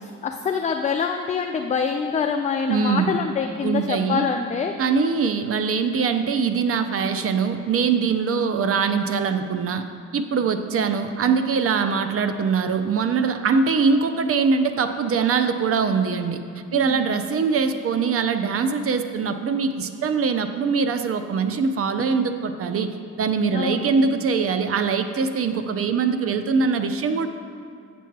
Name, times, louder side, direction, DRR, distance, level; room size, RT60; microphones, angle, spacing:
voice 1, 0.0-4.7 16.7-17.0 23.5-23.8, left 6 dB, 25° left, 4 dB, 0.4 m, -25 dB
voice 2, 2.7-3.1 3.6-4.2 4.8-9.8 10.1-16.4 16.7-27.3, right 5 dB, 50° right, 9 dB, 0.6 m, -22 dB
8.2 x 6.0 x 4.6 m, 2.2 s
cardioid pair, 90°, 30 cm